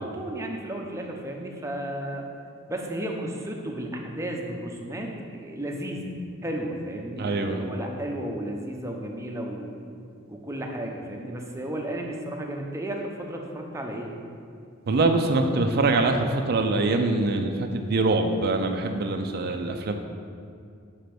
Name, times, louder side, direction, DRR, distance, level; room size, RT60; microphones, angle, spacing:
voice 1, 0.0-2.2 2.7-6.1 6.4-9.7 10.3-14.2, right 1 dB, 15° right, 1 dB, 0.7 m, -33 dB
voice 2, 7.2-7.6 14.9-19.9, right 2 dB, 50° right, 5 dB, 0.4 m, -24 dB
5.2 x 5.2 x 5.9 m, 2.4 s
head